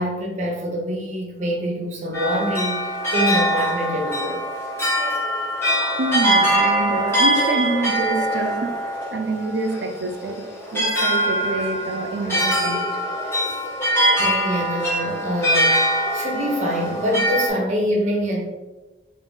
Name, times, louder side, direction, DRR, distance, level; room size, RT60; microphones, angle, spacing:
voice 1, 0.0-4.4 14.2-15.7 16.1-18.5, equal, 40° right, -1 dB, 0.9 m, -25 dB
sound 1, 2.1-17.5, right 1 dB, 15° left, 1.0 m, -22 dB
voice 2, 6.0-8.8 9.1-10.4 10.7-12.9, right 2 dB, 75° right, 6 dB, 0.5 m, -26 dB
3.7 x 2.6 x 3.8 m, 1.1 s
head